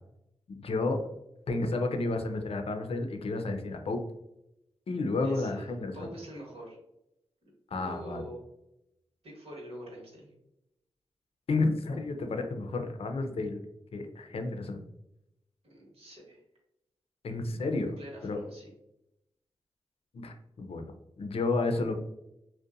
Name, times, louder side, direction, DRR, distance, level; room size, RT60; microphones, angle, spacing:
voice 1, 0.5-1.0 1.5-4.0 4.9-6.1 7.7-8.2 11.5-13.6 13.9-14.8 17.2-17.9 18.2-18.4 20.1-20.9 21.2-21.9, left 3 dB, 60° left, 5 dB, 0.4 m, -31 dB
voice 2, 5.2-6.8 7.7-8.4 9.2-10.3 15.6-16.4 17.8-18.7, equal, 65° right, -2 dB, 1.1 m, -45 dB
2.6 x 2.1 x 2.4 m, 0.85 s
cardioid pair, 40°, 11 cm